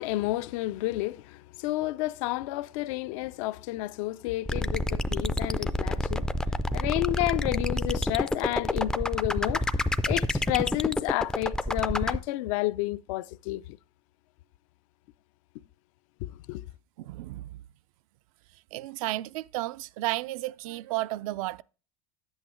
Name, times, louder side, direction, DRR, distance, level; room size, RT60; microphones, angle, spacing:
voice 1, 0.0-6.3 6.7-9.6 10.1-13.8 16.2-16.7, left 17 dB, 70° left, 0.4 m, -31 dB
sound 1, 4.5-12.2, left 1 dB, 5° left, 0.3 m, -28 dB
voice 2, 17.0-17.6 18.7-21.6, right 17 dB, 80° right, 0.4 m, -33 dB
9.6 x 8.1 x 3.0 m
supercardioid pair, 135°, 17 cm